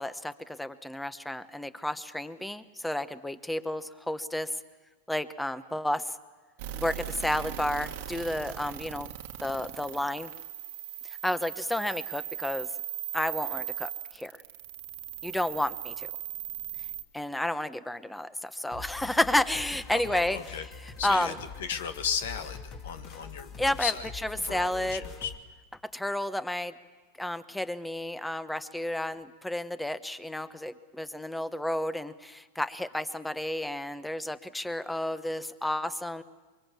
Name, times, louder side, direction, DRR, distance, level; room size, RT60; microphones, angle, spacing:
voice 1, 0.0-4.5 5.1-6.2 6.7-9.1 9.4-10.3 11.2-12.7 13.1-14.3 15.2-16.1 17.1-20.4 21.0-21.4 23.6-23.9 24.2-25.0 25.9-26.7 27.2-36.2, left 1 dB, 5° left, 13 dB, 1.0 m, -31 dB
sound 1, 6.6-17.0, right 12 dB, 60° right, 1.5 m, -38 dB
sound 2, 18.7-25.4, left 5 dB, 35° left, 2.6 m, -44 dB
voice 2, 19.9-20.7 21.0-24.1 24.4-25.3, left 7 dB, 75° left, 9 dB, 1.6 m, -35 dB
24.0 x 23.0 x 7.4 m, 1.3 s
hypercardioid pair, 110°, 0 cm